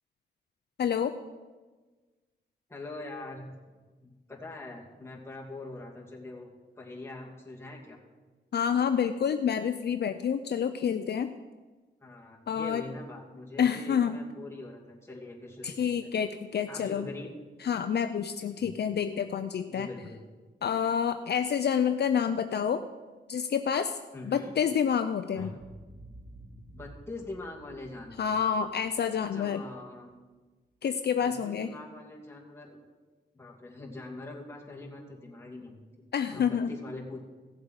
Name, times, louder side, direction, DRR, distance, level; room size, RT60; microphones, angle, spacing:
voice 1, 0.8-1.1 8.5-11.3 12.5-12.8 13.6-14.2 15.6-17.1 17.6-19.9 20.6-22.8 23.3-24.0 24.2-25.5 28.2-29.6 30.8-31.7 36.1-36.7, left 7 dB, 60° left, 9 dB, 0.5 m, -28 dB
voice 2, 2.7-3.6 4.0-6.5 6.8-8.0 12.0-16.1 16.7-17.3 18.5-18.7 19.7-20.2 24.1-24.5 25.3-25.7 26.7-28.3 29.2-30.1 31.2-32.8 33.3-37.2, left 2 dB, 15° left, -3 dB, 2.5 m, -43 dB
Boom, 25.5-29.8, right 1 dB, 55° right, 3.3 m, -52 dB
16.5 x 7.5 x 4.8 m, 1.3 s
wide cardioid pair, 105°, 19 cm